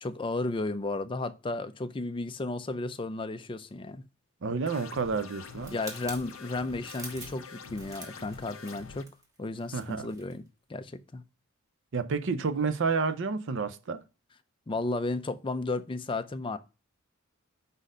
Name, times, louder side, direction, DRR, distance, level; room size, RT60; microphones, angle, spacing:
voice 1, 0.0-4.0 5.7-9.1 9.4-10.4 10.7-11.2 14.7-16.6, left 2 dB, 25° left, 0.4 m, -33 dB
voice 2, 4.4-5.8 9.7-10.1 11.9-14.0, right 4 dB, 60° right, 0.6 m, -30 dB
sound 1, 4.7-9.0, left 5 dB, 70° left, 0.7 m, -46 dB
sound 2, 5.6-10.4 10.7-10.9, right 1 dB, 15° right, 1.4 m, -47 dB
5.3 x 4.2 x 4.9 m
head